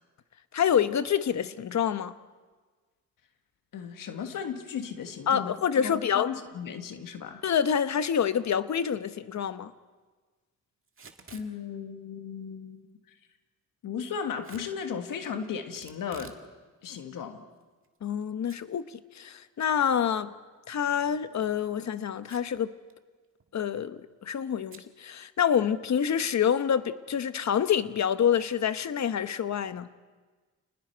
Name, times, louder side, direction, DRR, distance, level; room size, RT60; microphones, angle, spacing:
voice 1, 0.5-2.1 5.3-6.3 7.4-9.7 18.0-18.8 19.1-20.3 20.7-22.7 23.5-29.9, left 8 dB, 55° left, 1.0 m, -27 dB
voice 2, 3.7-7.4 11.3-13.0 13.8-16.4 16.8-17.4, left 7 dB, 85° left, 1.7 m, -36 dB
Packing tape duct tape / Tearing, 10.9-11.5 14.4-14.7 15.7-16.5 16.8-16.9 17.6-18.2 18.5-18.6 19.0-19.1 21.1-21.3 22.2-22.6 22.9-23.0 23.2-23.6 24.7-24.9, right 5 dB, 40° right, 1.9 m, -50 dB
29.0 x 20.0 x 4.6 m
cardioid pair, 85°, 32 cm